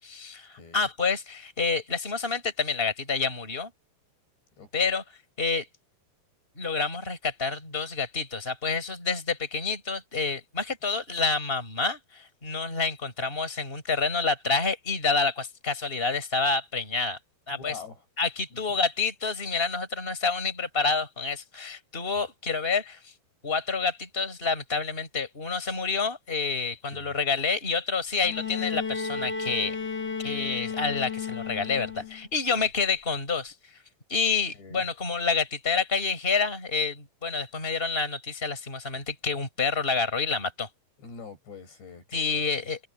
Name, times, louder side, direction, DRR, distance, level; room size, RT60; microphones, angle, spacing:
voice 1, 0.0-3.7 4.7-5.0 5.4-5.7 6.6-17.2 17.5-17.8 18.2-23.1 23.4-29.7 30.2-33.5 34.1-40.7 42.1-42.9, left 4 dB, 10° left, 6.1 m, -28 dB
voice 2, 4.6-4.9 17.5-18.0 18.5-18.8 26.9-27.2 32.0-32.1 32.4-32.7 34.5-34.9 41.0-42.5, left 5 dB, 75° left, 10.5 m, -45 dB
Bowed string instrument, 28.2-32.3 33.5-33.6, left 6 dB, 50° left, 1.3 m, -33 dB
omnidirectional pair, 5.0 m